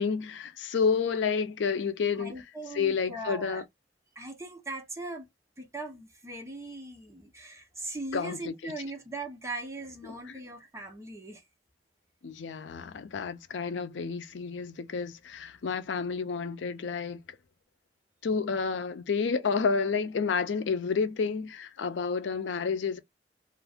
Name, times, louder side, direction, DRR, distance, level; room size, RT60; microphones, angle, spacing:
voice 1, 0.0-2.3 2.7-3.6 8.1-8.7 10.0-10.4 12.2-17.4 18.2-23.0, left 5 dB, 85° left, 0.4 m, -30 dB
voice 2, 2.1-3.6 4.1-5.3 5.6-11.4, right 2 dB, 15° right, 0.7 m, -40 dB
2.6 x 2.4 x 3.4 m
head